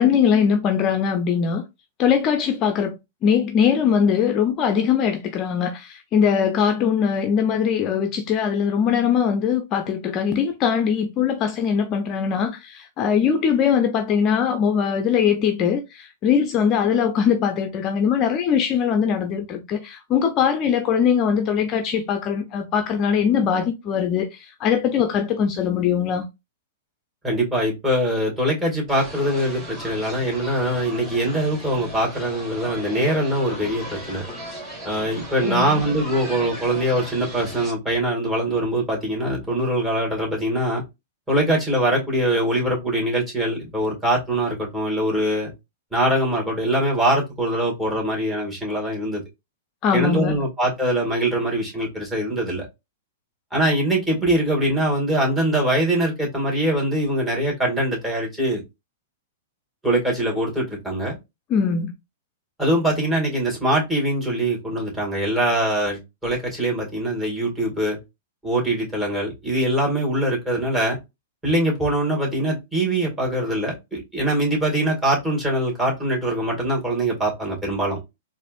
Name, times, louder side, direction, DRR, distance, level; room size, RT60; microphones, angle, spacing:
voice 1, 0.0-1.6 2.0-26.3 35.4-35.8 49.8-50.3 61.5-61.9, left 7 dB, 35° left, 0.5 m, -21 dB
voice 2, 27.2-34.2 34.8-40.8 41.3-45.5 45.9-49.2 49.9-52.7 53.5-58.6 59.8-61.2 62.6-68.0 68.4-71.0 71.4-78.0, right 1 dB, 10° right, 2.0 m, -23 dB
sound 1, 28.9-37.7, right 1 dB, 25° right, 1.9 m, -36 dB
4.1 x 2.5 x 2.4 m
hypercardioid pair, 115°, 0 cm